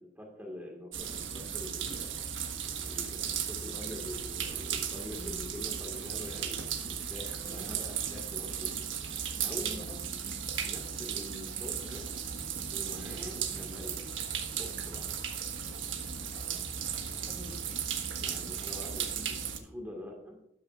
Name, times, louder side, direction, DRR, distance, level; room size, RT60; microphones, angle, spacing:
voice 1, 0.0-2.1 2.8-9.9 10.6-12.1 12.7-14.0 14.6-15.1 18.2-20.4, left 1 dB, 10° right, 0 dB, 1.7 m, -45 dB
sound 1, 0.9-19.6, right 7 dB, 85° right, 1.4 m, -36 dB
voice 2, 5.1-5.5 7.4-7.8 9.6-10.1 12.8-13.1 16.3-17.6, equal, 20° left, 3 dB, 2.6 m, -49 dB
13.0 x 11.5 x 2.5 m, 0.82 s
head